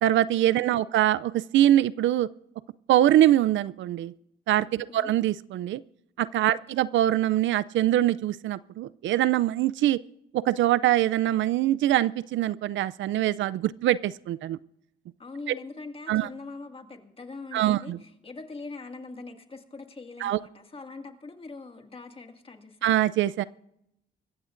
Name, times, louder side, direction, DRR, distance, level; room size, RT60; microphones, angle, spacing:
voice 1, 0.0-2.3 2.9-4.1 4.5-5.8 6.2-10.0 10.3-14.6 15.5-15.6 16.1-16.3 17.5-18.0 20.2-20.4 22.8-23.4, right 13 dB, 70° right, 19 dB, 0.4 m, -23 dB
voice 2, 15.2-22.9, left 3 dB, 30° left, 5 dB, 2.0 m, -42 dB
26.0 x 14.5 x 2.6 m, 0.82 s
cardioid pair, 90°, 20 cm